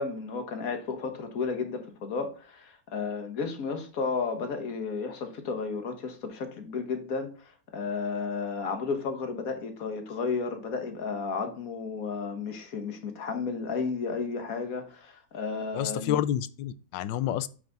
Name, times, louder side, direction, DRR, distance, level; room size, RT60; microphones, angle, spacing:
voice 1, 0.0-16.2, left 4 dB, 55° left, 1.6 m, -33 dB
voice 2, 15.7-17.5, left 11 dB, 90° left, 1.3 m, -29 dB
9.1 x 4.8 x 3.9 m
omnidirectional pair, 1.9 m